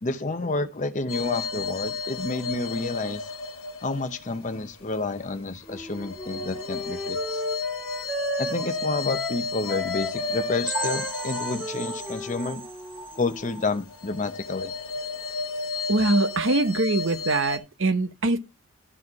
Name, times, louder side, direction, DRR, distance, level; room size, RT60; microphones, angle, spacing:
voice 1, 0.0-3.2 3.8-7.4 8.4-12.6 13.2-14.7, left 3 dB, 35° left, 0.7 m, -30 dB
sound 1, 1.1-5.0 5.5-13.4 13.8-17.6, left 4 dB, 70° left, 1.5 m, -33 dB
Wind instrument woodwind instrument, 5.7-13.7, equal, 5° left, 1.5 m, -35 dB
sound 2, 10.7-14.3 14.7-14.8 15.2-15.3 15.8-15.9, right 1 dB, 25° right, 1.6 m, -36 dB
voice 2, 15.9-18.4, right 2 dB, 60° right, 0.9 m, -23 dB
12.5 x 4.2 x 4.7 m
head